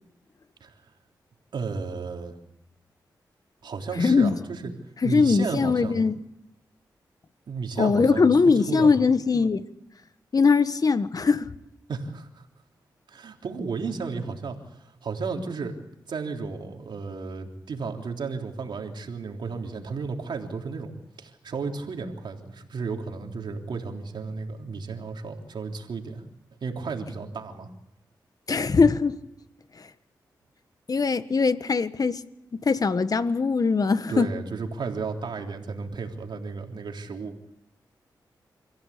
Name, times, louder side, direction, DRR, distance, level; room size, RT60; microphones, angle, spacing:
voice 1, 1.5-2.4 3.6-4.7 5.0-6.0 7.5-8.9 11.9-12.5 13.1-15.8 16.1-20.9 21.2-26.2 26.6-27.7 34.1-37.4, right 4 dB, 70° right, 3.5 m, -33 dB
voice 2, 4.0-4.4 5.0-6.2 7.8-9.7 10.3-11.5 28.5-29.2 29.8-29.9 30.9-32.2 32.5-34.3, left 4 dB, 50° left, 1.4 m, -21 dB
27.0 x 15.5 x 8.5 m
cardioid pair, 45°, 8 cm